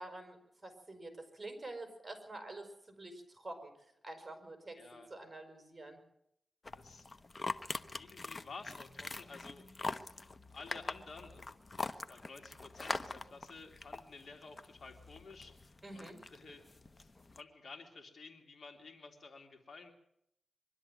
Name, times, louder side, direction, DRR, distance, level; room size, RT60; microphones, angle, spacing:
voice 1, 0.0-4.8 5.1-6.0 15.8-16.2, right 2 dB, 25° right, 5 dB, 5.6 m, -48 dB
voice 2, 4.8-5.1 6.7-7.1 8.0-10.2 10.5-19.9, left 4 dB, 65° left, 4 dB, 3.2 m, -53 dB
sound 1, 6.6-17.4, left 3 dB, 35° left, 1.0 m, -44 dB
23.5 x 12.5 x 9.3 m, 0.77 s
cardioid pair, 80°, 0 cm